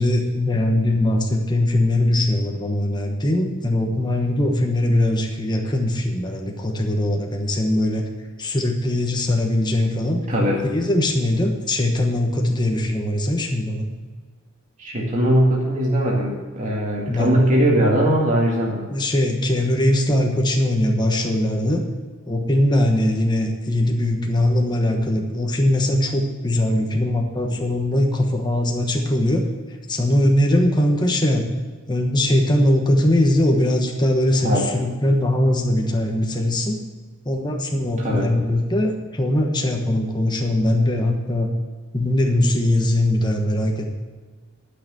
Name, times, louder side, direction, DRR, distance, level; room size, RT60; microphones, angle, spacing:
voice 1, 0.0-8.1 8.4-10.2 10.6-13.9 17.1-17.3 18.9-21.8 22.3-29.5 29.9-31.5 31.9-36.8 37.2-41.5 41.9-43.9, left 1 dB, 20° left, 1 dB, 1.2 m, -21 dB
voice 2, 10.3-10.6 14.8-18.8 34.4-34.7 38.0-38.3, right 1 dB, 35° right, -3 dB, 2.1 m, -20 dB
11.5 x 6.7 x 7.6 m, 1.4 s
head